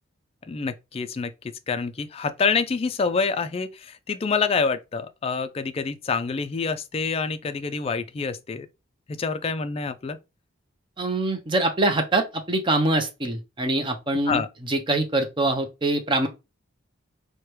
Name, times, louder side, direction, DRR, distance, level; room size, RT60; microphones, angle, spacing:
voice 1, 0.5-1.3 1.7-8.7 9.1-10.2 14.3-14.5, left 5 dB, 30° left, 0.3 m, -27 dB
voice 2, 11.0-16.3, right 2 dB, 25° right, 0.6 m, -24 dB
4.5 x 2.2 x 3.1 m
head